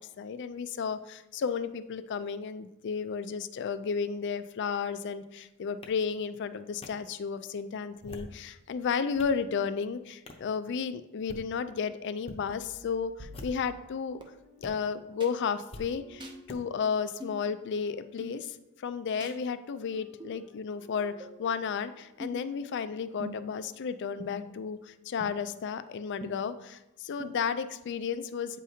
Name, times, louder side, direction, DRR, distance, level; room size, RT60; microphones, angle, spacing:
voice 1, 0.0-14.2 14.6-28.6, left 6 dB, 55° left, 12 dB, 0.4 m, -33 dB
sound 1, 5.8-5.9 6.8-6.9 7.9-8.4 8.9-9.4 10.3-10.5 11.1-11.4 12.2-12.4 13.3-13.8 14.6-14.7 15.7-15.9 16.5-16.6, left 1 dB, 25° left, 0.7 m, -45 dB
Wind instrument woodwind instrument, 12.4-18.3 19.1-24.9, left 1 dB, 90° right, 1.7 m, -59 dB
sound 2, 12.5-14.2 15.2-15.3 16.2-16.4 17.2-17.4 18.2-18.4 19.2-19.4 20.2-20.4 21.2-21.3 22.2-22.5 23.2-23.6 24.2-24.6 25.2-25.3 26.2-26.3 27.2-27.3, right 1 dB, 20° right, 0.7 m, -44 dB
8.4 x 4.9 x 2.7 m, 0.93 s
head